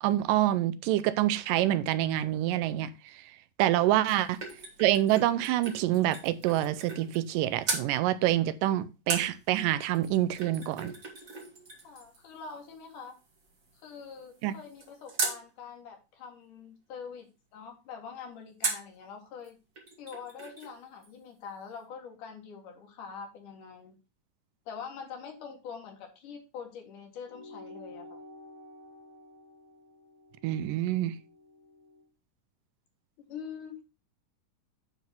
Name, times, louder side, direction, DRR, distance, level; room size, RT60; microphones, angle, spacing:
voice 1, 0.0-3.1 3.6-4.4 4.8-10.9 14.4-14.6 30.4-31.2, right 13 dB, 80° right, 2.2 m, -26 dB
sound 1, 3.7-7.4 7.6-7.9 9.1-15.4 18.6-19.0 19.4-19.5 19.8-20.8 21.0-21.1, right 3 dB, 30° right, 1.6 m, -38 dB
voice 2, 11.8-13.1 13.8-19.6 20.0-24.0 24.7-28.2 33.2-33.8, left 6 dB, 70° left, 3.1 m, -44 dB
sound 2, 27.3-32.1, left 1 dB, 50° left, 1.8 m, -51 dB
9.8 x 3.8 x 5.8 m
omnidirectional pair, 3.9 m